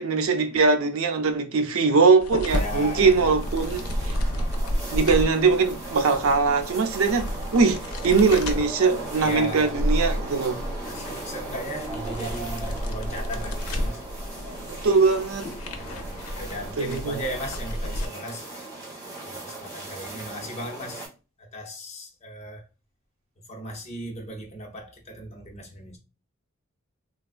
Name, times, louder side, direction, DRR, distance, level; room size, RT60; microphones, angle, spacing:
voice 1, 0.0-4.2 4.9-10.6 14.8-15.5 16.8-17.2, right 4 dB, 70° right, 0.5 m, -21 dB
sound 1, 2.2-18.1, equal, 80° left, 0.5 m, -31 dB
sound 2, 2.5-21.1, right 2 dB, 15° right, 1.1 m, -38 dB
voice 2, 2.6-3.3 4.1-4.5 9.2-9.8 10.9-14.0 15.7-18.5 19.2-21.0 21.4-22.6 23.5-26.0, equal, 30° left, 0.6 m, -37 dB
3.4 x 2.3 x 2.4 m
head